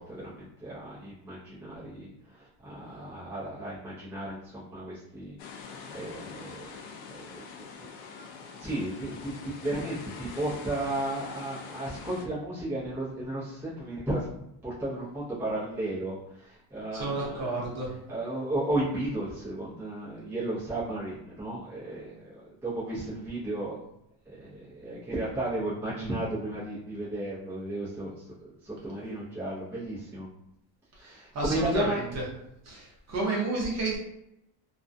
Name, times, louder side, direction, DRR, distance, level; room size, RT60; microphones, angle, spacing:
voice 1, 0.0-7.9 8.5-14.3 14.6-17.5 18.1-23.8 24.2-30.3 31.0-32.0, right 1 dB, 5° right, -10 dB, 0.6 m, -34 dB
sound 1, 5.4-12.2, left 5 dB, 60° left, 0.5 m, -44 dB
voice 2, 16.9-17.9 30.9-32.0 32.6-34.0, right 2 dB, 35° right, -4 dB, 0.7 m, -31 dB
2.4 x 2.1 x 2.5 m, 0.80 s
cardioid pair, 165°, 45 cm